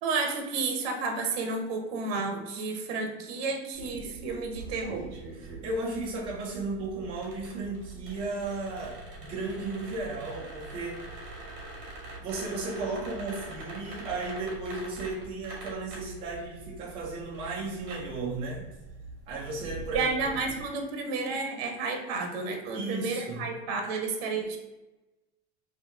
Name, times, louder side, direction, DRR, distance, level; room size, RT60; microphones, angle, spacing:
voice 1, 0.0-5.1 19.9-24.6, right 4 dB, 60° right, 4 dB, 0.8 m, -31 dB
sound 1, 3.7-20.6, right 2 dB, 35° right, 1.4 m, -44 dB
voice 2, 5.4-11.0 12.2-18.7 19.3-20.1 22.7-23.4, right 3 dB, 15° right, -3 dB, 0.4 m, -35 dB
2.8 x 2.8 x 3.4 m, 1.1 s
supercardioid pair, 170°, 35 cm